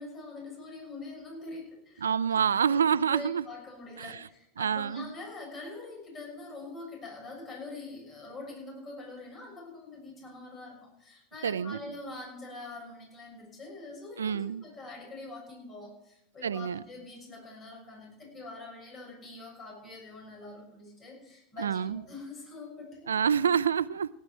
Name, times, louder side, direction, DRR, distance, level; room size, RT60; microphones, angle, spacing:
voice 1, 0.0-2.8 3.1-23.1, left 2 dB, 35° left, -1 dB, 6.6 m, -44 dB
voice 2, 2.0-3.4 4.0-4.2 4.6-5.1 11.4-11.8 14.2-14.6 16.4-16.8 21.6-22.0 23.1-24.1, right 7 dB, 90° right, 18 dB, 0.4 m, -27 dB
18.0 x 10.5 x 4.5 m, 0.81 s
hypercardioid pair, 90°, 0 cm